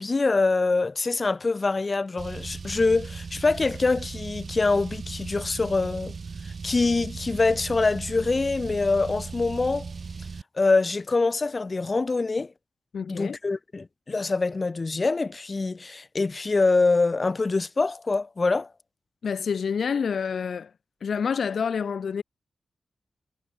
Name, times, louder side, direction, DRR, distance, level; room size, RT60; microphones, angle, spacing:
voice 1, 0.0-6.1 6.6-9.9 10.6-12.5 13.1-18.7, left 3 dB, 35° left, 2.2 m, -24 dB
Car, 2.2-10.4, right 5 dB, 50° right, 6.2 m, -37 dB
voice 2, 12.9-13.4 19.2-20.7 21.0-22.2, left 6 dB, 70° left, 1.2 m, -28 dB
wide cardioid pair, 125°, 0 cm